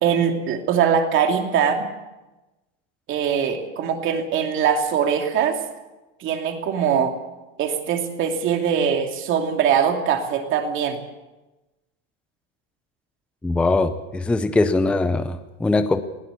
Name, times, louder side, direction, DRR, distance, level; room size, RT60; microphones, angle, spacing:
voice 1, 0.0-1.9 3.1-5.6 6.2-7.2 7.6-11.0, right 7 dB, 35° right, 4 dB, 2.8 m, -22 dB
voice 2, 13.4-16.0, left 2 dB, 5° left, 11 dB, 0.6 m, -21 dB
20.0 x 15.5 x 8.3 m, 1.1 s
supercardioid pair, 145°, 36 cm